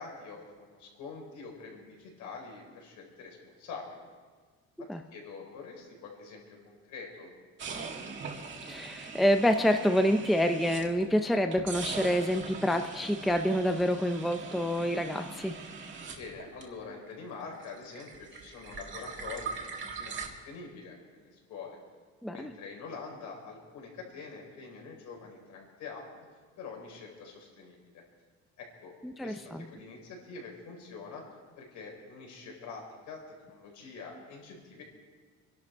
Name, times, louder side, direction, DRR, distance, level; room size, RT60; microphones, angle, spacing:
voice 1, 0.0-4.0 4.8-7.3 7.6-8.5 16.2-21.8 22.3-28.0 28.6-29.0 29.2-31.2 31.6-34.8, left 4 dB, 75° left, 0 dB, 4.5 m, -45 dB
sound 1, 7.6-11.1 11.5-17.1 17.3-20.3, right 5 dB, 40° right, 1.8 m, -41 dB
voice 2, 8.7-15.6 22.2-22.5 29.0-29.6, equal, ahead, 6 dB, 0.5 m, -27 dB
27.0 x 11.5 x 4.6 m, 1.5 s
cardioid pair, 170°, 30 cm